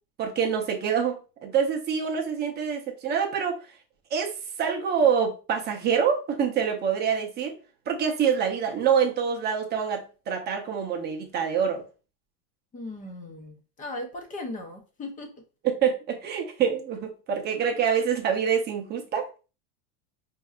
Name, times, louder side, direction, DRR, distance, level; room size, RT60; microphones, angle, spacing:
voice 1, 0.2-3.6 4.1-7.5 7.9-11.8 15.6-19.3, right 7 dB, 20° right, 2 dB, 0.7 m, -26 dB
voice 2, 12.7-15.3, left 2 dB, 20° left, 3 dB, 0.6 m, -37 dB
4.5 x 2.7 x 2.4 m, 0.34 s
supercardioid pair, 150°, 45 cm